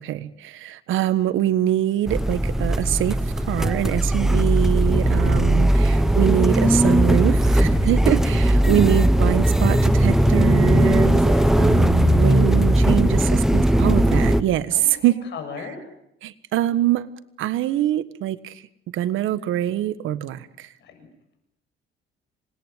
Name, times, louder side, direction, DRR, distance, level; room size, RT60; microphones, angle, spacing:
voice 1, 0.0-15.1 16.2-17.1 17.4-18.6 18.9-20.7, right 12 dB, 90° right, 14 dB, 1.5 m, -24 dB
sound 1, 2.1-14.4, right 1 dB, ahead, 1.1 m, -18 dB
voice 2, 7.7-8.8 10.8-11.6 12.5-13.1 14.7-15.9 20.8-21.1, left 5 dB, 65° left, 6 dB, 7.3 m, -38 dB
27.0 x 21.0 x 9.4 m, 0.76 s
cardioid pair, 150°, 20 cm